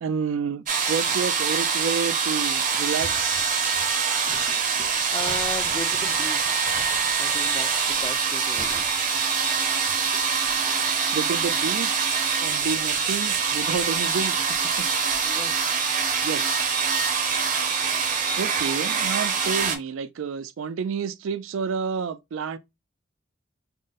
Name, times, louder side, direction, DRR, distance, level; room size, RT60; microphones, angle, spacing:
voice 1, 0.0-3.4 11.1-12.1 12.4-14.9 16.2-16.6 18.4-22.6, right 6 dB, 90° right, 0.4 m, -30 dB
sound 1, 0.7-19.8, right 6 dB, 40° right, 0.6 m, -24 dB
voice 2, 4.2-6.8 7.2-9.1 10.1-10.2 10.6-10.7 12.6-12.8 15.2-15.7, left 2 dB, 25° left, 0.4 m, -38 dB
3.7 x 2.0 x 3.9 m
head